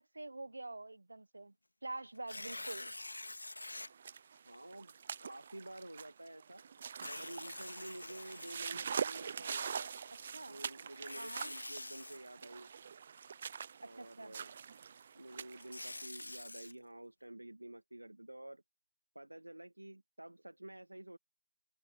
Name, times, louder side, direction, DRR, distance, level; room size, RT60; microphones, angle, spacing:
voice 1, 0.0-1.5 1.8-2.9 10.3-10.5 11.2-11.5 13.8-14.3, right 2 dB, 45° right, 1.0 m, -46 dB
Tearing, 2.1-3.9 4.5-4.6 6.9-9.0 10.9-12.2 15.3-16.7, left 2 dB, 65° left, 1.9 m, -46 dB
sound 1, 3.7-16.0, right 7 dB, 15° right, 0.3 m, -44 dB
voice 2, 4.4-4.9 5.2-6.6 7.1-9.9 10.5-12.7 13.8-14.5 15.1-18.6 19.1-21.2, right 1 dB, 90° right, 1.6 m, -50 dB
figure-of-eight pair, 175°, 0 cm